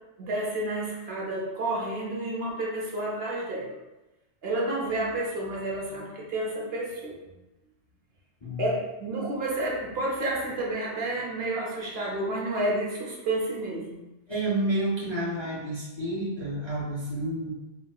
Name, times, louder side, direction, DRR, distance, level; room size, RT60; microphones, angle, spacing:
voice 1, 0.2-3.7 4.4-7.1 8.6-14.0, right 1 dB, 60° right, -3 dB, 0.8 m, -30 dB
voice 2, 14.3-17.5, right 1 dB, 30° left, -8 dB, 0.5 m, -30 dB
4.3 x 2.1 x 2.3 m, 1.0 s
omnidirectional pair, 1.2 m